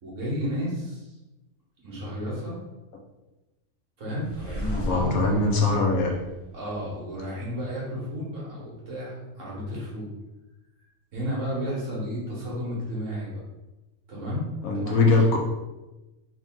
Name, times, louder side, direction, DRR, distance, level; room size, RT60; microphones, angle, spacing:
voice 1, 0.0-1.2 1.8-2.6 4.0-5.2 6.5-10.1 11.1-13.4 14.1-14.4 14.7-15.3, equal, 65° right, -5 dB, 1.6 m, -32 dB
sound 1, 4.2-7.2, left 1 dB, 15° left, 0.5 m, -35 dB
voice 2, 4.8-6.2 14.6-15.4, left 2 dB, 85° left, 0 dB, 1.2 m, -21 dB
3.6 x 2.9 x 3.5 m, 1.1 s
omnidirectional pair, 1.4 m